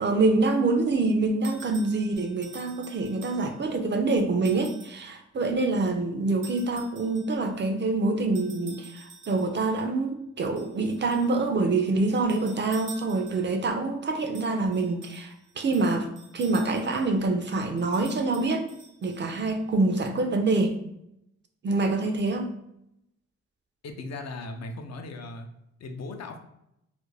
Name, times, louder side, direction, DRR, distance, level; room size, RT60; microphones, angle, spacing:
voice 1, 0.0-16.1 16.3-18.6 19.0-20.7 21.6-22.5, right 3 dB, 40° right, 5 dB, 0.4 m, -26 dB
sound 1, 1.4-3.7 4.5-5.0 6.4-7.4 8.3-9.7 10.6-11.4 12.2-13.6 14.3-17.1 17.8-19.5, right 3 dB, 75° right, 0.7 m, -49 dB
voice 2, 23.8-25.5 25.8-26.4, left 2 dB, 60° left, 5 dB, 0.5 m, -37 dB
2.4 x 2.1 x 3.1 m, 0.81 s
cardioid pair, 75°, 30 cm